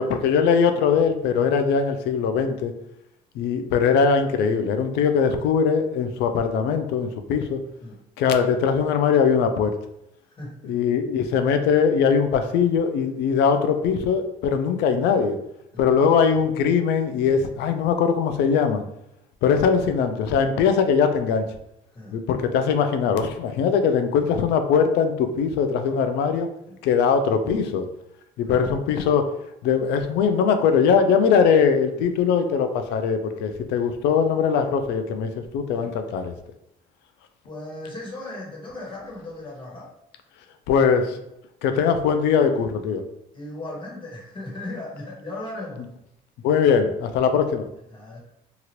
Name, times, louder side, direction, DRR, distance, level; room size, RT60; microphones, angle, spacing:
voice 1, 0.0-2.7 3.4-7.6 8.2-9.7 10.6-15.4 15.8-18.8 19.4-21.5 22.1-26.5 26.8-27.9 28.4-29.2 29.6-36.3 40.7-41.2 41.6-43.0 46.4-47.7, left 6 dB, 85° left, 7 dB, 0.4 m, -21 dB
voice 2, 10.3-10.8 15.7-15.9 21.9-22.2 26.7-26.8 28.4-28.6 31.9-32.1 35.8-36.0 37.4-39.9 43.3-45.9 47.9-48.2, left 2 dB, 30° left, -4 dB, 1.3 m, -37 dB
2.9 x 2.4 x 3.0 m, 0.81 s
cardioid pair, 110°, 17 cm